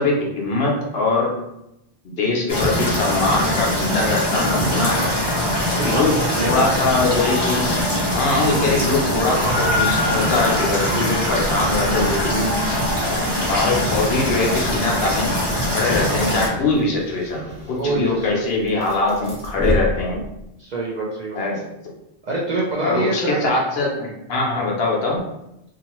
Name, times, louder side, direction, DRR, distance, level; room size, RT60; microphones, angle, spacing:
voice 1, 0.0-1.3 2.0-5.1 5.8-6.2 6.4-7.8 8.1-12.5 13.5-15.3 15.7-20.2 21.3-21.6 22.8-25.2, left 3 dB, 65° left, -2 dB, 0.9 m, -22 dB
sound 1, 2.5-16.5, left 1 dB, 25° left, 0.9 m, -22 dB
voice 2, 5.7-6.7 8.8-9.3 16.0-16.2 17.8-18.4 20.6-21.4 22.2-23.4, right 2 dB, 55° right, -4 dB, 0.5 m, -26 dB
sound 2, 8.9-20.5, equal, 5° right, 0.6 m, -33 dB
2.7 x 2.4 x 2.9 m, 0.85 s
omnidirectional pair, 1.1 m